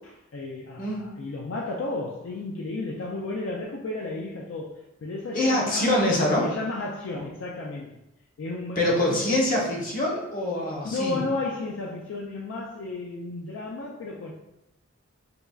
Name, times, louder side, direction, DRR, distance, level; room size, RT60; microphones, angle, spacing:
voice 1, 0.0-6.0 6.4-8.0 8.4-9.4 10.8-14.3, left 2 dB, 65° left, -1 dB, 0.4 m, -33 dB
voice 2, 5.3-6.5 7.1-7.3 8.8-11.2, left 1 dB, 40° left, -3 dB, 0.8 m, -24 dB
5.1 x 2.3 x 2.2 m, 0.89 s
head